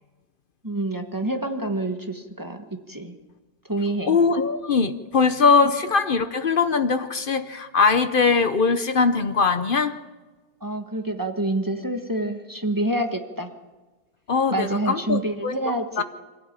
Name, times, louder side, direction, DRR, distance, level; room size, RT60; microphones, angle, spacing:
voice 1, 0.6-3.1 3.7-4.2 10.6-13.5 14.5-16.0, right 1 dB, 10° right, 4 dB, 1.3 m, -27 dB
voice 2, 4.1-10.0 14.3-15.6 16.0-16.1, left 5 dB, 55° left, 10 dB, 0.6 m, -21 dB
24.0 x 16.0 x 8.8 m, 1.3 s
omnidirectional pair, 2.1 m